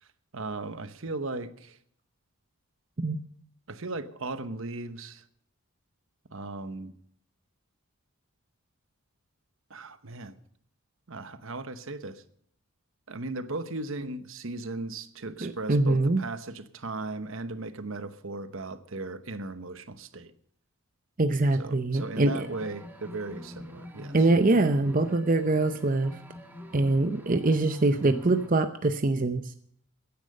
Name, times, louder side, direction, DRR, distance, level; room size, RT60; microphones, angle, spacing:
voice 1, 0.3-1.8 3.7-5.2 6.3-6.9 9.7-10.4 11.1-12.2 13.1-20.3 21.6-24.2, right 2 dB, 65° right, 1.0 m, -37 dB
voice 2, 15.4-16.2 21.2-22.5 24.1-26.2 26.7-29.4, right 2 dB, 40° right, 0.7 m, -24 dB
sound 1, 21.9-28.5, equal, 10° right, 1.5 m, -44 dB
15.5 x 10.5 x 6.5 m
head